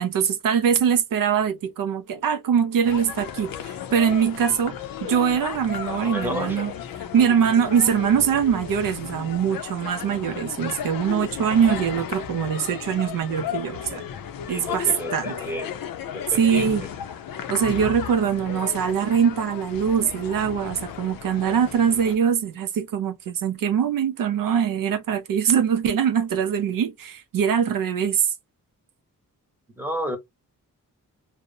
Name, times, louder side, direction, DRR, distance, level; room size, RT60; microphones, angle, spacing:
voice 1, 0.0-6.7 7.1-14.0 14.5-15.3 16.4-16.8 17.5-28.3, right 8 dB, 75° right, 0.5 m, -23 dB
sound 1, 2.8-22.2, left 9 dB, 80° left, 0.5 m, -34 dB
voice 2, 6.0-6.6 14.5-15.8 16.1-16.9 29.8-30.2, equal, 5° right, 0.8 m, -31 dB
2.6 x 2.0 x 2.6 m
wide cardioid pair, 110°, 34 cm